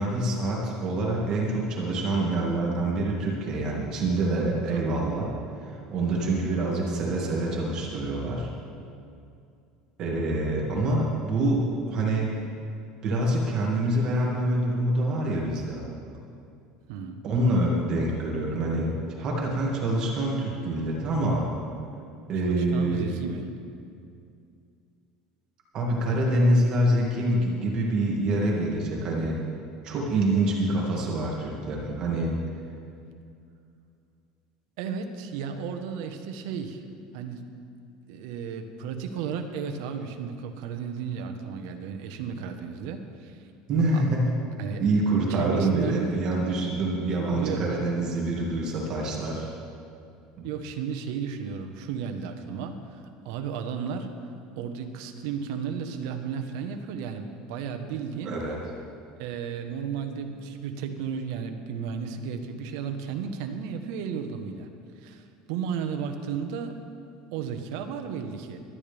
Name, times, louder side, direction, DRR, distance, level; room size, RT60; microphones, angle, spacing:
voice 1, 0.0-5.3 5.6-8.5 10.0-12.3 13.0-15.8 17.2-21.5 22.3-23.2 25.7-29.4 29.8-32.3 43.7-44.3 44.8-49.5 58.2-58.6, right 1 dB, 35° right, -3 dB, 2.2 m, -26 dB
voice 2, 4.7-5.1 16.9-17.2 22.4-23.5 34.8-36.8 37.1-37.6 38.1-43.4 43.9-44.0 44.6-44.8 45.3-46.2 47.2-47.6 50.4-54.1 54.6-58.5 59.2-64.7 65.0-66.8 67.3-68.6, right 7 dB, 70° right, 6 dB, 1.2 m, -34 dB
19.0 x 12.5 x 3.5 m, 2.5 s
cardioid pair, 165°, 2 cm